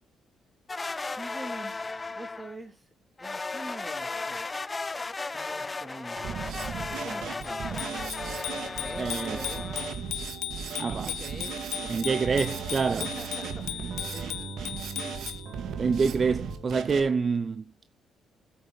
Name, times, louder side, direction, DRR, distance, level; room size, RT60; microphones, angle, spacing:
sound 1, 0.7-2.6 3.2-9.9, left 3 dB, 25° left, 0.5 m, -35 dB
voice 1, 1.2-2.9 3.2-4.5 5.3-6.5 6.9-7.8 8.7-9.8 10.9-12.2 12.6-14.6, right 1 dB, 10° right, 3.2 m, -45 dB
Drum kit, 6.2-17.0, right 6 dB, 75° right, 2.1 m, -37 dB
Bicycle bell, 7.4-15.5, left 13 dB, 85° left, 0.7 m, -38 dB
voice 2, 9.0-9.4 10.8-11.1 11.9-13.1 15.8-17.6, right 5 dB, 40° right, 0.7 m, -26 dB
13.0 x 8.7 x 4.1 m
cardioid pair, 90°, 0 cm